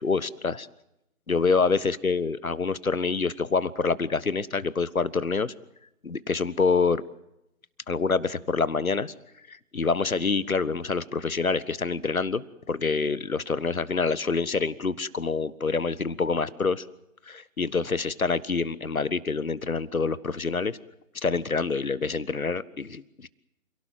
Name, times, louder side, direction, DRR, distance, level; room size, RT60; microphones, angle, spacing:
voice 1, 0.0-0.7 1.3-5.5 6.0-7.0 7.9-9.1 9.5-16.8 17.3-20.8 21.2-23.3, left 4 dB, 80° left, 17 dB, 1.5 m, -26 dB
28.5 x 17.5 x 7.7 m, 0.85 s
figure-of-eight pair, 150°, 41 cm